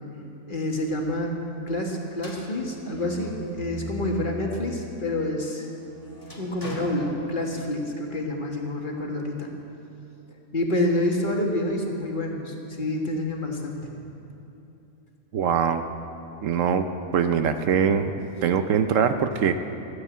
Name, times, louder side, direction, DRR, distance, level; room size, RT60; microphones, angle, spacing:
voice 1, 0.5-1.3 1.7-5.7 6.4-9.5 10.5-13.9, left 1 dB, 40° left, 0 dB, 1.6 m, -28 dB
sound 1, 2.1-4.6 5.0-7.8, left 1 dB, 15° left, 2.3 m, -40 dB
voice 2, 15.3-15.8 16.4-16.9 17.1-18.1 18.4-19.5, right 7 dB, 70° right, 9 dB, 1.0 m, -22 dB
13.5 x 9.2 x 8.4 m, 2.8 s
omnidirectional pair, 1.4 m